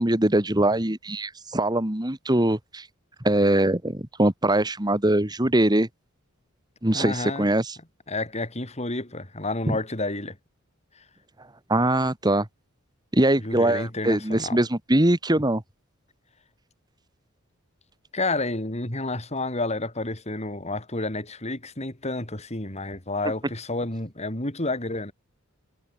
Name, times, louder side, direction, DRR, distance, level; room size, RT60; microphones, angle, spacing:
voice 1, 0.0-2.9 3.2-5.9 6.8-7.8 9.7-9.8 11.7-12.5 13.1-15.6, right 1 dB, 20° right, 1.9 m, -22 dB
voice 2, 6.9-7.5 8.1-10.4 13.4-14.6 18.1-25.1, left 2 dB, 30° left, 3.7 m, -30 dB
head